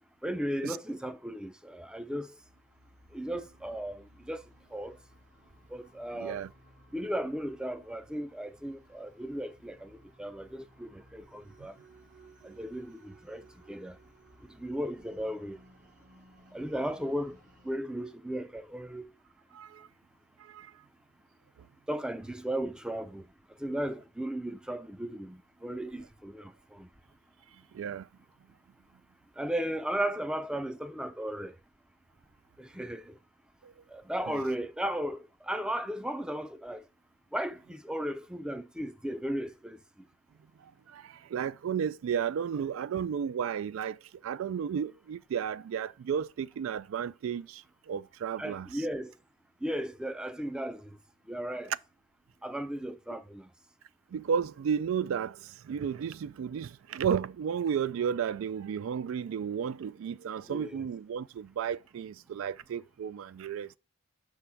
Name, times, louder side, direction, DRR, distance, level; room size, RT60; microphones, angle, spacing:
voice 1, 0.2-2.4 3.1-4.4 4.7-5.0 5.7-6.4 6.9-11.8 12.4-14.0 14.5-15.6 16.5-17.4 17.6-19.1 21.9-23.3 23.6-26.9 29.4-31.6 32.6-33.2 33.9-36.8 37.3-39.8 48.4-49.1 49.6-50.9 51.3-51.7 52.4-53.5 60.5-60.9, right 1 dB, 5° right, 0.4 m, -35 dB
sound 1, 2.3-17.8, right 1 dB, 40° right, 0.8 m, -59 dB
voice 2, 6.2-6.5 19.5-19.9 20.4-20.7 27.7-28.1 33.6-33.7 40.9-48.7 54.1-63.7, right 7 dB, 80° right, 0.3 m, -33 dB
6.1 x 3.5 x 5.6 m
head